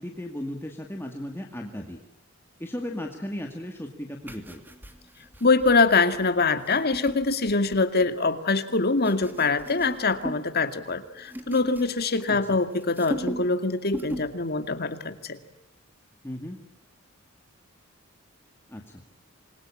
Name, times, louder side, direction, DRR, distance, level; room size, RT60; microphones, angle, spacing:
voice 1, 0.0-2.0 2.6-4.6 12.3-12.6 16.2-16.6 18.7-19.0, left 1 dB, 10° left, 2 dB, 2.2 m, -36 dB
Apples slicing, 4.2-8.1 8.7-10.5 10.8-12.5 12.8-13.6 13.9-14.4 14.7-14.9, equal, 10° right, 2.7 m, -38 dB
voice 2, 5.4-15.4, left 3 dB, 50° left, 9 dB, 2.3 m, -24 dB
27.0 x 22.0 x 8.7 m, 0.89 s
head